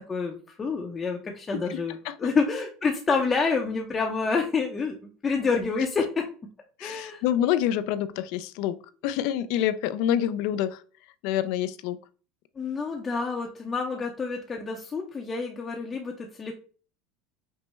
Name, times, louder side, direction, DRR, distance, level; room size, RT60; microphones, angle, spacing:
voice 1, 0.1-4.9 5.2-6.2 6.8-7.2 12.6-16.5, left 4 dB, 25° left, 1 dB, 0.6 m, -28 dB
voice 2, 6.8-8.8 9.0-10.8 11.2-12.0, left 11 dB, 70° left, 13 dB, 0.3 m, -27 dB
5.2 x 2.0 x 3.2 m, 0.39 s
supercardioid pair, 115°, 0 cm